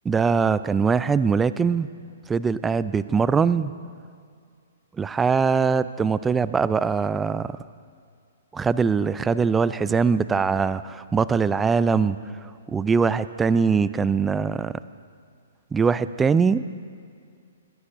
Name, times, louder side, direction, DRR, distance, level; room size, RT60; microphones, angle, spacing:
voice 1, 0.1-1.9 2.3-3.7 5.0-7.6 8.5-12.2 12.7-14.8 15.7-16.6, right 5 dB, 10° right, 15 dB, 0.4 m, -22 dB
20.5 x 15.0 x 2.6 m, 2.2 s
hypercardioid pair, 125°, 0 cm